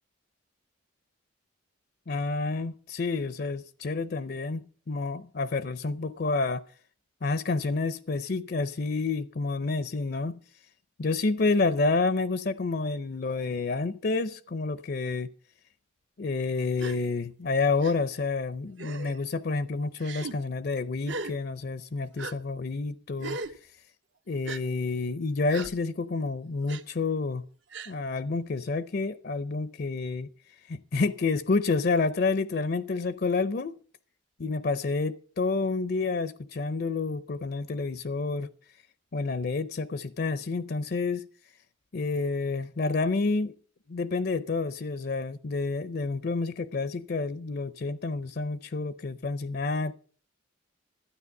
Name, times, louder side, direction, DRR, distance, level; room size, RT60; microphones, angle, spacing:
voice 1, 2.1-6.6 7.2-10.4 11.0-15.3 16.2-23.4 24.3-27.4 27.9-30.3 30.7-33.8 34.4-38.5 39.1-41.3 41.9-43.5 43.9-49.9, left 3 dB, 50° left, 0.5 m, -29 dB
Gasp, 16.8-17.0 17.8-17.9 18.8-19.2 20.0-20.3 21.0-21.3 22.2-22.3 23.2-23.5 24.4-24.6 25.5-25.7 26.7-26.8 27.7-27.9, right 3 dB, 60° right, 0.9 m, -37 dB
12.5 x 9.9 x 5.9 m
head